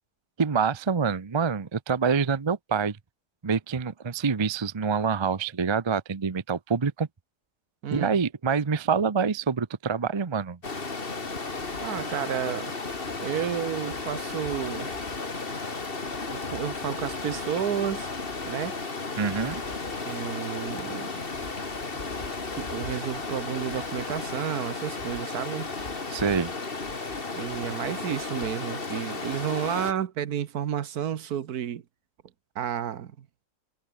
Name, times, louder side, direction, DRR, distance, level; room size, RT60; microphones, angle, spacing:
voice 1, 0.4-3.0 3.4-7.1 7.9-10.6 19.2-19.6 26.1-26.5, right 5 dB, 30° right, 0.5 m, -26 dB
voice 2, 7.8-8.2 11.8-12.7 13.2-14.9 16.3-18.1 18.4-18.7 20.0-21.1 22.6-25.7 27.3-31.8 32.5-33.3, right 9 dB, 70° right, 1.5 m, -31 dB
Stream, 10.6-29.9, left 3 dB, 35° left, 2.3 m, -34 dB
omnidirectional pair, 1.7 m